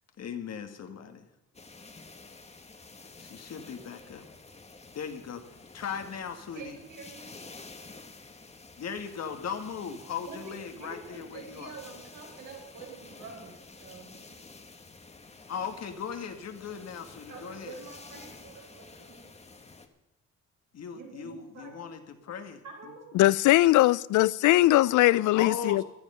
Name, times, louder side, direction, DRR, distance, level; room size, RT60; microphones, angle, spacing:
voice 1, 0.2-1.3 3.2-4.3 4.9-5.4 5.7-6.8 8.8-11.7 15.5-17.8 20.7-22.6 25.4-25.8, left 7 dB, 60° left, 1.8 m, -38 dB
sound 1, 1.5-19.9, left 3 dB, 20° left, 1.3 m, -50 dB
voice 2, 6.5-7.3 10.3-14.1 17.3-19.2 20.9-21.7 22.6-23.1 24.7-25.2, right 4 dB, 80° right, 5.7 m, -46 dB
voice 3, 23.1-25.8, left 17 dB, 80° left, 0.5 m, -21 dB
15.0 x 11.5 x 5.6 m
cardioid pair, 90°, 30 cm